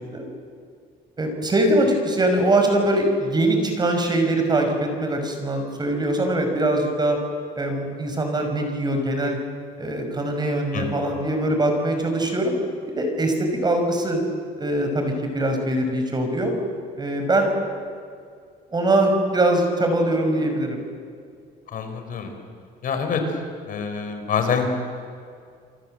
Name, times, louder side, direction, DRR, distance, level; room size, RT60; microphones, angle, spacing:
voice 1, 1.2-7.2 7.6-9.4 9.8-12.6 13.0-14.2 14.6-16.6 17.0-17.5 18.7-20.8, right 1 dB, 25° right, 4 dB, 5.7 m, -22 dB
voice 2, 21.7-22.3 22.8-23.2 23.7-24.8, left 6 dB, 55° left, 6 dB, 4.7 m, -26 dB
29.5 x 23.5 x 7.8 m, 2.2 s
cardioid pair, 110°, 17 cm